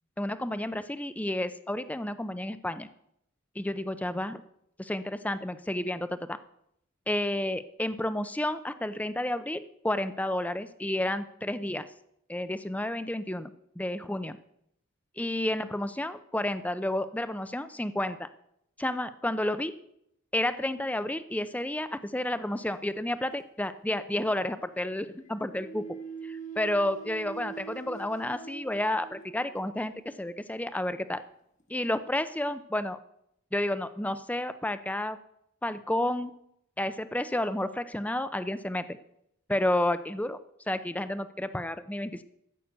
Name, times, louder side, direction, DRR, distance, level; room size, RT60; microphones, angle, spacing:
voice 1, 0.2-2.9 3.6-4.4 4.8-6.4 7.1-11.9 12.3-13.5 13.8-14.4 15.2-18.3 18.8-19.7 20.3-25.9 26.2-31.2 31.7-33.0 33.5-35.2 35.6-36.3 36.8-38.9 39.5-40.4 40.7-42.2, left 1 dB, 5° left, 12 dB, 0.5 m, -31 dB
sound 1, 21.8-22.8 24.8-29.9 30.6-30.8 31.6-31.7, right 5 dB, 35° left, 1.3 m, -44 dB
14.0 x 6.6 x 7.9 m, 0.76 s
head